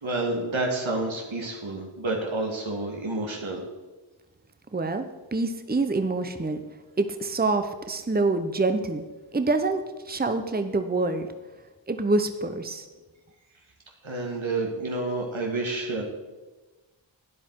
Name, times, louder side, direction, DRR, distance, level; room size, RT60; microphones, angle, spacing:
voice 1, 0.0-3.6 14.0-16.0, right 2 dB, 80° right, 0 dB, 1.9 m, -29 dB
voice 2, 4.7-6.6 7.0-9.0 9.3-9.8 10.1-11.3 11.9-12.9, right 3 dB, 20° right, 8 dB, 0.8 m, -26 dB
12.0 x 9.8 x 4.6 m, 1.2 s
wide cardioid pair, 65°, 47 cm